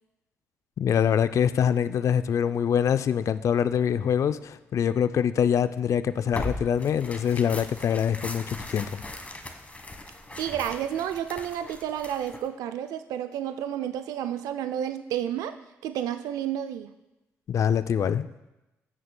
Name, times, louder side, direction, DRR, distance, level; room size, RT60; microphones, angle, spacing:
voice 1, 0.8-9.0 17.5-18.3, left 8 dB, 55° left, 0.4 m, -24 dB
Tearing, 6.3-12.5, left 2 dB, 20° left, 1.3 m, -39 dB
voice 2, 10.4-15.5 15.8-16.9, right 10 dB, 75° right, 0.4 m, -31 dB
15.0 x 6.3 x 2.2 m
hypercardioid pair, 50°, 6 cm